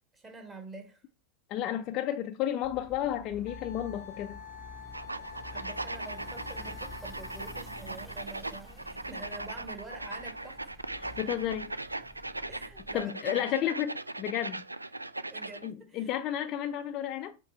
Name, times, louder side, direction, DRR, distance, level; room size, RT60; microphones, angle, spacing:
voice 1, 0.1-1.0 5.2-10.7 12.5-13.5 15.3-16.1, right 3 dB, 15° right, 1.7 m, -47 dB
voice 2, 1.5-4.4 11.0-11.7 12.9-13.9 14.2-14.6 15.6-17.3, left 11 dB, 35° left, 0.5 m, -32 dB
sound 1, 2.6-13.0, left 1 dB, ahead, 1.0 m, -50 dB
Wind instrument woodwind instrument, 3.5-7.9, left 8 dB, 65° left, 0.8 m, -48 dB
sound 2, 4.9-15.7, right 2 dB, 85° right, 0.3 m, -39 dB
7.2 x 3.2 x 4.5 m
figure-of-eight pair, 90°, 0 cm